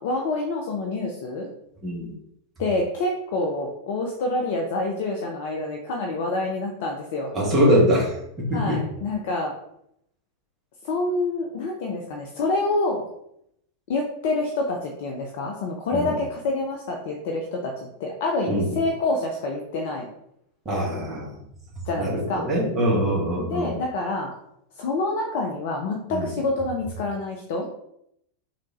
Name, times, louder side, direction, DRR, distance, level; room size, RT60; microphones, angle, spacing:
voice 1, 0.0-1.5 2.6-7.3 8.5-9.5 10.8-13.0 13.9-20.1 21.8-22.5 23.5-24.3 24.8-27.7, left 2 dB, 50° left, 2 dB, 0.4 m, -27 dB
voice 2, 1.8-2.1 7.3-8.8 15.9-16.2 18.5-18.8 20.6-21.4 22.0-23.7 26.1-26.3, equal, 20° right, -4 dB, 1.3 m, -23 dB
3.3 x 2.5 x 3.0 m, 0.76 s
figure-of-eight pair, 90°, 0 cm